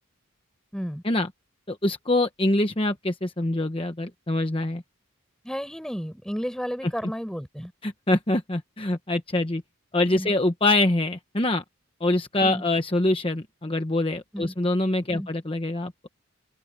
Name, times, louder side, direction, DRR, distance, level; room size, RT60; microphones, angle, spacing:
voice 1, 0.7-1.0 5.4-7.7 10.1-10.3 12.4-12.6 14.3-14.5 15.1-15.3, equal, 5° left, 6.2 m, -32 dB
voice 2, 1.7-4.8 6.8-6.9 7.8-9.6 9.9-11.6 12.0-16.1, left 2 dB, 25° left, 1.0 m, -24 dB
head